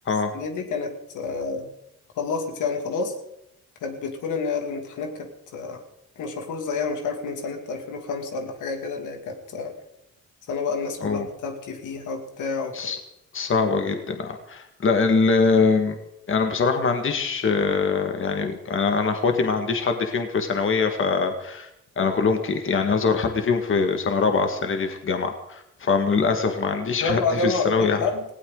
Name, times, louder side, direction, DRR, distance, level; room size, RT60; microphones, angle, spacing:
voice 1, 0.3-1.7 2.2-3.2 3.8-5.8 6.2-9.7 10.5-12.9 27.0-28.2, left 4 dB, 80° left, 3 dB, 2.6 m, -29 dB
voice 2, 13.3-16.0 16.3-21.7 22.0-28.0, left 4 dB, 40° left, 5 dB, 1.8 m, -23 dB
19.0 x 16.5 x 3.9 m, 0.82 s
cardioid pair, 90°, 30 cm